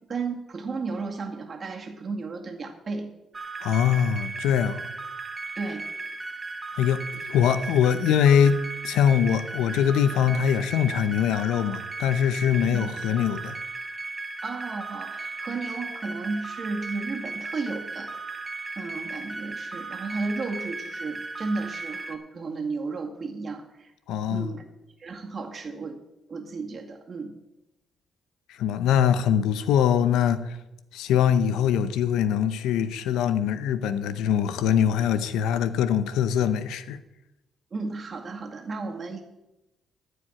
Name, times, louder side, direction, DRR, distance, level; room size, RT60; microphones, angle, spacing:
voice 1, 0.1-3.1 5.6-5.8 12.7-12.9 14.4-18.1 18.8-23.9 24.3-24.6 25.0-26.0 26.3-27.3 37.7-39.2, right 3 dB, 40° right, 2.1 m, -33 dB
sound 1, 3.3-22.1, right 3 dB, 25° right, 1.2 m, -36 dB
voice 2, 3.6-4.8 6.7-13.6 24.1-24.5 28.5-30.6 30.9-37.0, left 8 dB, 90° left, 0.7 m, -23 dB
14.0 x 5.1 x 8.8 m
cardioid pair, 90°, 0 cm